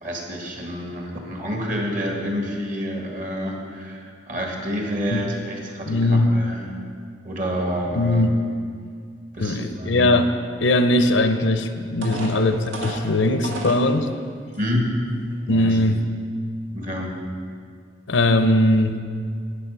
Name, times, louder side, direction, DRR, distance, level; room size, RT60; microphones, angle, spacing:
voice 1, 0.0-6.7 7.2-8.4 9.3-10.1 12.0-12.2 14.6-14.9 15.5-15.8 16.7-17.2, equal, 45° right, 1 dB, 1.7 m, -28 dB
voice 2, 5.9-6.3 8.0-8.4 9.4-10.3 10.6-12.6 12.8-14.1 15.5-16.0 18.1-19.0, left 1 dB, 80° left, 9 dB, 0.7 m, -19 dB
sound 1, 11.4-11.5 12.0-13.9 14.5-14.6 15.1-15.4, right 1 dB, 85° right, 1.9 m, -32 dB
12.0 x 8.4 x 5.5 m, 2.1 s
head